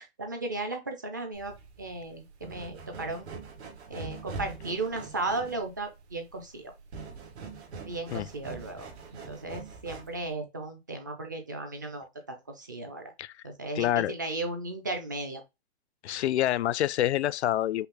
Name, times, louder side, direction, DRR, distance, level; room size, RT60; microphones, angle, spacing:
voice 1, 0.0-3.3 3.9-6.7 7.8-8.9 9.3-13.1 13.4-15.4, right 2 dB, 20° right, 0.4 m, -35 dB
sound 1, 1.3-10.3, right 4 dB, 85° right, 1.8 m, -43 dB
voice 2, 13.8-14.1 16.0-17.9, left 13 dB, 85° left, 0.5 m, -27 dB
5.5 x 2.0 x 3.7 m
hypercardioid pair, 170°, 32 cm